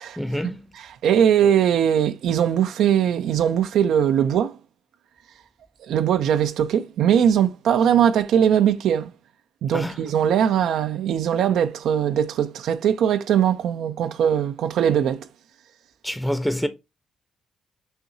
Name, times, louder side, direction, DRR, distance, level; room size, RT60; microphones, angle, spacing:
voice 1, 0.2-0.6 9.7-9.9 16.0-16.7, equal, 5° left, 0.6 m, -26 dB
voice 2, 0.7-4.6 5.8-9.1 9.6-15.3, right 9 dB, 75° right, 0.4 m, -20 dB
5.6 x 2.8 x 2.7 m
supercardioid pair, 60°, 0 cm